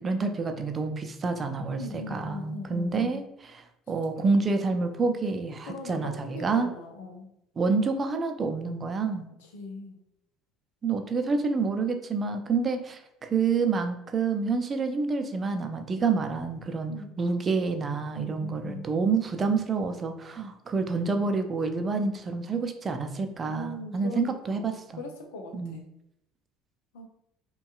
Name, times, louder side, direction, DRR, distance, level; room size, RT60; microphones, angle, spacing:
voice 1, 0.0-6.7 7.6-9.3 10.8-25.0 25.5-25.8, right 4 dB, 30° right, 6 dB, 0.5 m, -28 dB
voice 2, 1.7-3.2 5.7-7.3 9.5-10.0 16.9-17.1 18.1-18.9 23.5-25.9 26.9-27.1, left 2 dB, 70° left, 3 dB, 0.6 m, -40 dB
5.2 x 2.3 x 2.4 m, 0.80 s
figure-of-eight pair, 60°, 0 cm